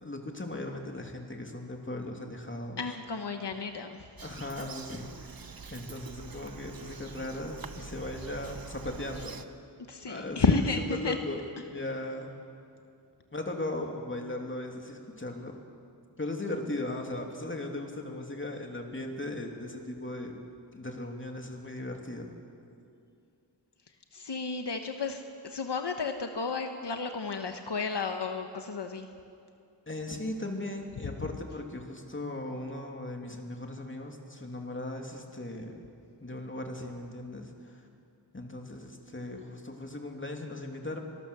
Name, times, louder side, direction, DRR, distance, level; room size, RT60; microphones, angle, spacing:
voice 1, 0.0-2.8 4.2-5.4 5.7-9.3 10.1-12.3 13.3-15.5 16.2-20.4 20.7-22.3 29.9-35.8 36.2-37.7 38.3-41.0, left 1 dB, 30° left, 2 dB, 2.7 m, -37 dB
voice 2, 2.8-4.0 9.9-11.2 24.1-29.1, left 4 dB, 75° left, 5 dB, 1.2 m, -32 dB
Bird vocalization bird call bird song, 4.2-9.4, right 5 dB, 55° right, 1.1 m, -45 dB
25.0 x 19.5 x 6.9 m, 2.4 s
wide cardioid pair, 75°, 41 cm